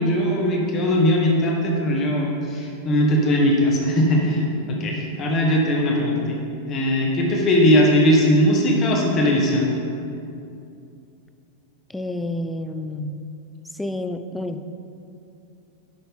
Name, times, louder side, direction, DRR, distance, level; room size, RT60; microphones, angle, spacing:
voice 1, 0.0-6.4 6.7-9.7, equal, 30° left, -1 dB, 1.4 m, -19 dB
voice 2, 11.9-13.3 13.7-14.7, left 1 dB, 5° left, 9 dB, 0.4 m, -29 dB
9.3 x 5.8 x 3.7 m, 2.6 s
figure-of-eight pair, 90°, 0 cm